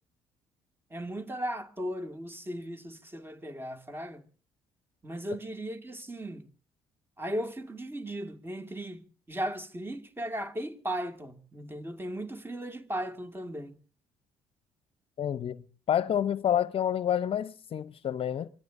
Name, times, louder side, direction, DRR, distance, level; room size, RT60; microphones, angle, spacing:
voice 1, 0.9-4.2 5.0-6.5 7.2-13.8, right 1 dB, 20° right, 2.3 m, -37 dB
voice 2, 15.2-18.5, left 10 dB, 50° left, 0.7 m, -29 dB
25.0 x 21.0 x 2.6 m
hypercardioid pair, 50°, 12 cm